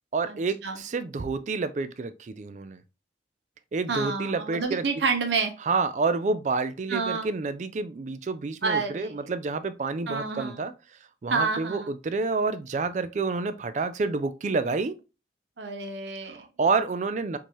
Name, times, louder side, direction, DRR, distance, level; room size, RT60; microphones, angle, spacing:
voice 1, 0.1-2.8 3.7-4.9 5.6-10.7 11.2-14.9 16.3-17.4, right 4 dB, 40° right, 0.3 m, -28 dB
voice 2, 3.9-5.5 6.9-7.3 8.6-9.3 10.1-10.6 11.3-11.9 15.6-16.4, right 4 dB, 70° right, 0.8 m, -29 dB
4.4 x 2.8 x 3.0 m
head